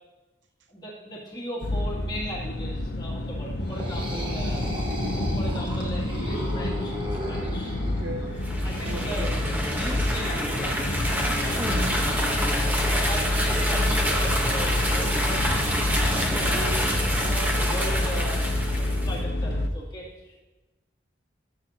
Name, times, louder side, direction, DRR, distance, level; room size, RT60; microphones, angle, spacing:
voice 1, 0.7-4.6 5.1-7.8 8.6-9.3 9.7-10.9 11.4-11.8 12.6-16.9 17.2-18.5 19.0-20.4, right 1 dB, 20° left, -7 dB, 2.7 m, -37 dB
sound 1, 1.6-19.7, left 1 dB, 65° left, 0.8 m, -28 dB
sound 2, 3.6-8.4, equal, 25° right, 1.5 m, -35 dB
voice 2, 7.8-8.4 8.8-9.6 11.6-12.0, right 2 dB, 80° right, 7 dB, 0.8 m, -37 dB
sound 3, 8.3-19.1, equal, 10° right, 1.1 m, -27 dB
17.0 x 7.4 x 2.9 m, 1.2 s
head